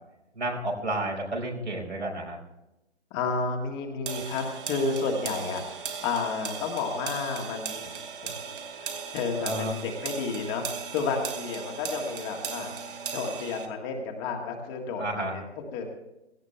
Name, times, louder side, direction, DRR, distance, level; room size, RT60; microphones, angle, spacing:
voice 1, 0.3-2.4 9.4-9.7 15.0-15.4, right 1 dB, 85° right, -1 dB, 5.0 m, -31 dB
voice 2, 3.1-7.9 8.2-8.3 8.8-10.7 10.9-12.7 13.1-15.4 15.7-15.8, left 4 dB, 20° left, 2 dB, 1.8 m, -31 dB
sound 1, 4.1-13.7, right 6 dB, 50° right, 2.3 m, -37 dB
17.5 x 15.5 x 3.4 m, 0.94 s
figure-of-eight pair, 140°, 33 cm